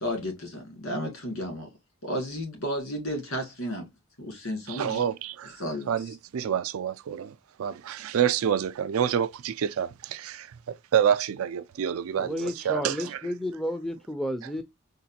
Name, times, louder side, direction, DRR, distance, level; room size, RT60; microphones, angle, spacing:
voice 1, 0.0-1.7 2.1-3.8 4.2-5.0 5.6-5.9, equal, 85° left, 2.0 m, -32 dB
voice 2, 4.7-5.6 5.9-13.2, right 8 dB, 80° right, 0.4 m, -28 dB
voice 3, 12.2-14.6, equal, ahead, 0.3 m, -32 dB
3.9 x 2.5 x 2.7 m
head